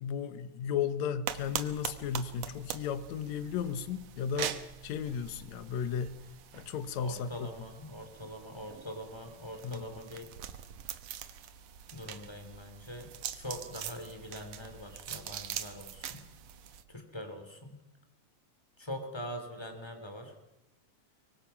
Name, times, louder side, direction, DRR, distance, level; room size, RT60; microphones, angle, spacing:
voice 1, 0.0-4.6 4.8-6.2 6.5-7.5 9.6-9.9, left 7 dB, 65° left, 12 dB, 2.3 m, -34 dB
sound 1, 1.3-16.8, right 9 dB, 65° right, 2.0 m, -43 dB
voice 2, 6.9-10.3 11.9-16.2 16.9-17.8 18.8-20.3, equal, 10° left, 5 dB, 3.2 m, -43 dB
24.0 x 24.0 x 5.9 m, 0.95 s
omnidirectional pair, 3.6 m